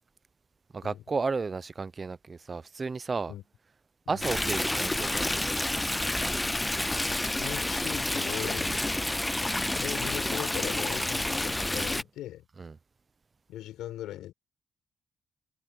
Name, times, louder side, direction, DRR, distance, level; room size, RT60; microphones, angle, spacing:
voice 1, 0.7-3.3 4.1-5.4 8.6-8.8 12.6-12.7, right 4 dB, 30° right, 0.8 m, -33 dB
Stream, 4.2-12.0, left 1 dB, 10° left, 0.7 m, -29 dB
voice 2, 7.4-8.8 9.7-12.5 13.5-14.3, left 13 dB, 85° left, 5.8 m, -39 dB
cardioid pair, 90°, 0 cm